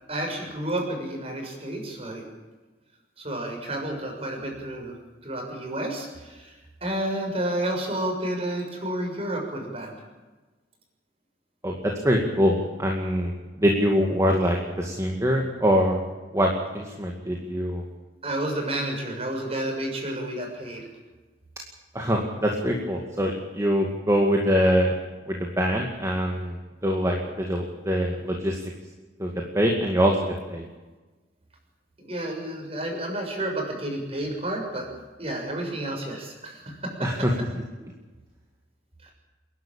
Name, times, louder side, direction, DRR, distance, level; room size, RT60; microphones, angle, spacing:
voice 1, 0.1-2.2 3.2-4.9 5.2-9.9 18.2-20.9 32.0-34.9 35.2-37.1 39.0-39.1, right 1 dB, 35° right, 1 dB, 6.6 m, -31 dB
voice 2, 11.6-16.0 16.3-17.8 21.9-24.9 25.3-26.6 26.8-28.6 29.2-30.6 37.0-37.3, equal, 15° right, 0 dB, 2.2 m, -24 dB
28.5 x 11.5 x 8.9 m, 1.2 s
head